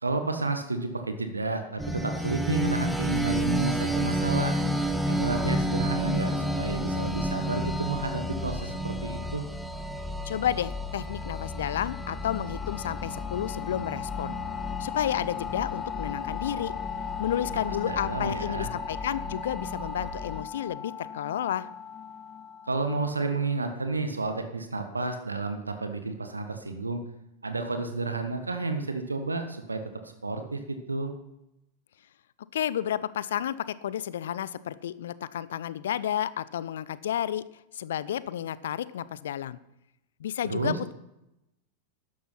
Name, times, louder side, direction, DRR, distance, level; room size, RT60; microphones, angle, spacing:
voice 1, 0.0-4.5 5.1-9.4 17.7-18.7 22.7-27.0 27.4-29.8 30.2-31.1 40.4-40.8, right 3 dB, 80° right, 7 dB, 1.4 m, -31 dB
sound 1, 1.8-20.4, equal, 5° right, 1.3 m, -31 dB
voice 2, 10.2-14.3 14.8-16.7 17.2-21.7 32.5-37.4 37.7-39.6 40.2-40.9, left 10 dB, 60° left, 18 dB, 0.6 m, -31 dB
sound 2, 10.3-23.7, left 8 dB, 35° left, 1.2 m, -38 dB
12.5 x 10.5 x 5.8 m, 0.88 s
figure-of-eight pair, 90°, 0 cm